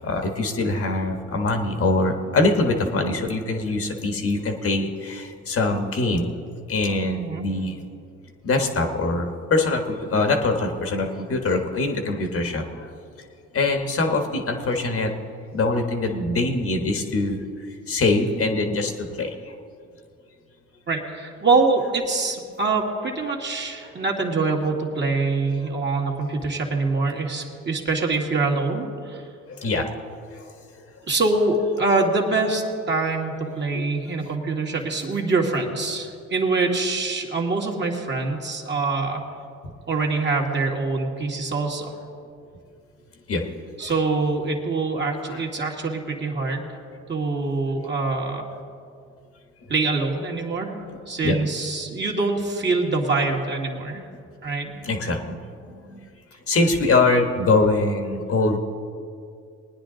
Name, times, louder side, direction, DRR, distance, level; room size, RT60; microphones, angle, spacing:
voice 1, 0.0-6.3 6.7-7.8 8.4-12.9 13.5-15.1 15.5-17.4 17.9-19.5 29.5-30.0 30.3-30.5 33.7-33.8 43.3-43.4 43.8-43.9 45.3-45.4 51.2-51.4 53.9-54.0 54.8-55.4 55.7-56.0 56.5-58.6, left 2 dB, 45° left, 4 dB, 1.5 m, -23 dB
voice 2, 7.1-7.5 20.9-29.3 31.1-39.2 39.9-41.9 43.8-46.8 47.1-48.5 49.7-50.8 51.1-54.1 54.4-54.7, right 3 dB, 35° right, 0 dB, 2.0 m, -24 dB
20.0 x 9.7 x 3.9 m, 2.4 s
supercardioid pair, 80°, 32 cm